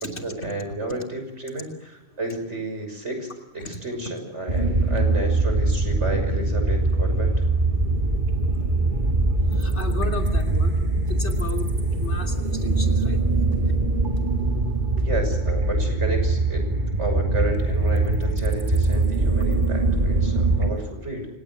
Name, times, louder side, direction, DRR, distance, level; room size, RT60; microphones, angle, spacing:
voice 1, 0.2-7.3 15.0-16.7 17.0-21.3, right 2 dB, 80° right, 6 dB, 6.5 m, -31 dB
sound 1, 4.5-20.7, right 2 dB, 45° right, 2.3 m, -22 dB
voice 2, 9.5-10.8 11.1-11.7 12.0-13.2, left 2 dB, 70° left, 3 dB, 3.4 m, -34 dB
29.0 x 18.0 x 7.9 m, 0.94 s
omnidirectional pair, 1.2 m